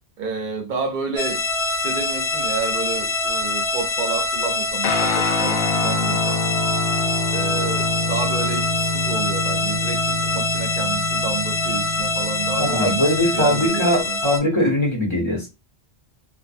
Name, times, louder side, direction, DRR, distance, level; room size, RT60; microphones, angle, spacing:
voice 1, 0.2-6.4 7.3-13.0 13.3-14.2, right 5 dB, 55° right, 0.6 m, -30 dB
sound 1, 1.2-14.4, left 2 dB, 90° left, 1.1 m, -24 dB
Guitar, 4.8-13.6, left 2 dB, 70° left, 0.8 m, -27 dB
voice 2, 12.6-15.5, equal, 30° left, 0.8 m, -21 dB
2.5 x 2.2 x 2.4 m
omnidirectional pair, 1.1 m